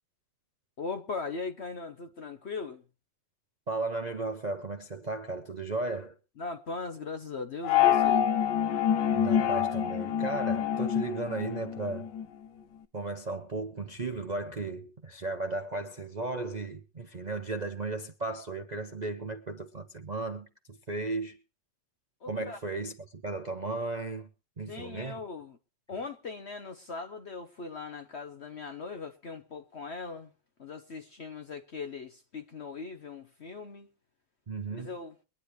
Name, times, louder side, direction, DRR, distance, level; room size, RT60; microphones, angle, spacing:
voice 1, 0.8-2.8 6.4-8.3 22.2-22.6 24.7-25.6 25.9-30.3 30.6-33.9 34.7-35.1, left 4 dB, 50° left, 0.9 m, -39 dB
voice 2, 3.7-6.1 9.1-12.1 12.9-21.4 22.3-24.3 24.6-25.2 34.5-34.9, right 3 dB, 40° right, 0.6 m, -35 dB
sound 1, 7.6-12.3, left 9 dB, 75° left, 1.6 m, -26 dB
23.0 x 9.9 x 3.1 m
omnidirectional pair, 1.9 m